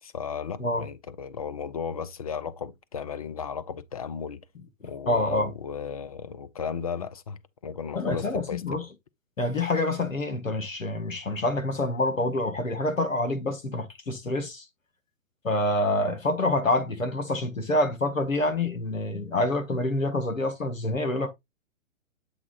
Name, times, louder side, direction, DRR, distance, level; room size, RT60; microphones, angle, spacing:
voice 1, 0.0-4.4 4.8-8.8, left 6 dB, 30° left, 0.4 m, -35 dB
voice 2, 5.1-5.5 7.9-8.8 9.4-14.6 15.4-21.3, left 2 dB, 75° left, 1.7 m, -27 dB
7.7 x 3.6 x 3.8 m
figure-of-eight pair, 125°, 39 cm